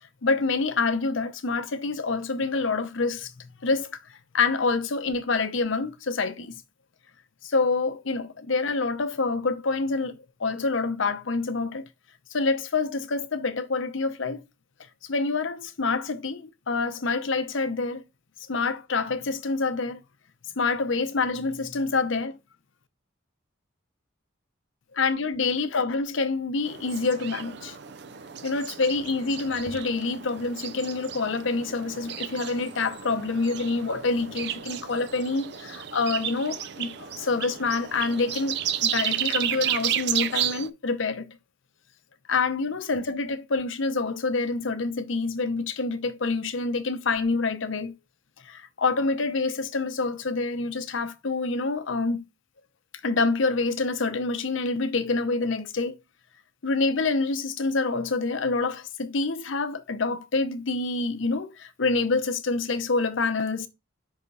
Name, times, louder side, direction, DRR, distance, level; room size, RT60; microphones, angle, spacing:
voice 1, 0.2-6.6 7.4-11.9 12.3-14.4 15.1-18.0 18.5-20.0 20.6-22.4 24.9-27.8 28.4-41.4 42.3-48.0 48.4-52.2 53.0-55.9 56.6-63.7, left 3 dB, 75° left, 0.8 m, -27 dB
sound 1, 26.7-40.7, right 10 dB, 55° right, 0.4 m, -33 dB
5.6 x 3.6 x 5.3 m
head